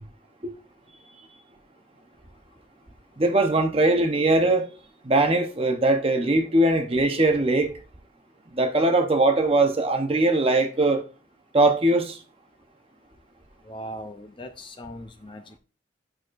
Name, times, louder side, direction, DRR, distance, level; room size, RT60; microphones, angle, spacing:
voice 1, 3.2-4.7 5.0-7.7 8.5-11.0 11.5-12.2, right 2 dB, 30° right, 0.8 m, -21 dB
voice 2, 13.6-15.6, equal, 25° left, 0.5 m, -39 dB
9.0 x 6.2 x 2.5 m
head